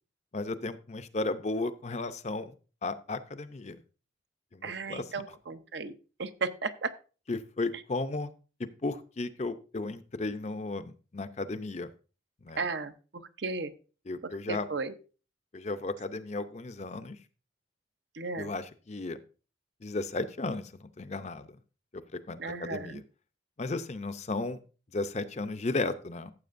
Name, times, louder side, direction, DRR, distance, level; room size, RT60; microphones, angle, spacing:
voice 1, 0.3-2.5 2.8-3.8 4.5-5.1 7.3-8.3 8.6-11.9 12.4-12.6 14.1-14.7 15.5-17.2 18.4-19.2 19.8-21.5 21.9-23.0 23.6-24.6 24.9-26.3, left 2 dB, 35° left, 11 dB, 0.5 m, -34 dB
voice 2, 4.6-5.9 6.2-6.9 12.6-13.7 14.2-14.9 18.1-18.5 22.4-23.0, right 4 dB, 60° right, 10 dB, 0.7 m, -35 dB
14.5 x 7.5 x 2.5 m, 0.35 s
head